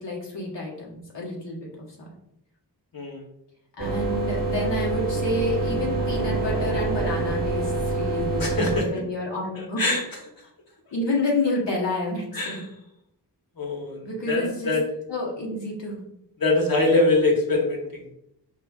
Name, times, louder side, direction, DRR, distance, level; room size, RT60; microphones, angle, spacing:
voice 1, 0.0-1.8 3.8-8.5 8.9-9.8 10.9-12.6 14.0-14.7 15.1-16.0, left 1 dB, 80° left, -3 dB, 1.2 m, -29 dB
sound 1, 3.8-8.8, right 2 dB, 20° right, 0.9 m, -26 dB
voice 2, 8.4-8.9 9.5-10.0 12.3-12.6 13.6-14.8 16.4-18.0, left 2 dB, 55° left, 0 dB, 1.0 m, -23 dB
4.9 x 2.4 x 2.3 m, 0.77 s
wide cardioid pair, 80°, 42 cm